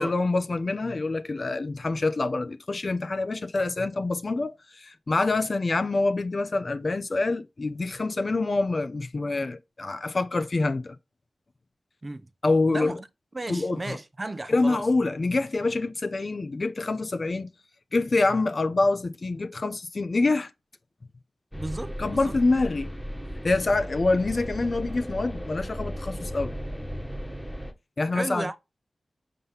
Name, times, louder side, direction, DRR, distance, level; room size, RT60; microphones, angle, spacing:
voice 1, 0.0-11.0 12.4-13.0 13.5-14.0 14.5-17.5 17.9-20.5 22.0-22.9 23.4-26.5 28.0-28.6, left 3 dB, 55° left, 0.9 m, -26 dB
voice 2, 12.7-13.1 13.3-14.8 21.5-22.3 28.1-28.6, right 2 dB, 35° right, 0.8 m, -34 dB
sound 1, 21.5-27.7, equal, 5° left, 1.4 m, -35 dB
5.4 x 3.9 x 5.7 m
cardioid pair, 40°, 0 cm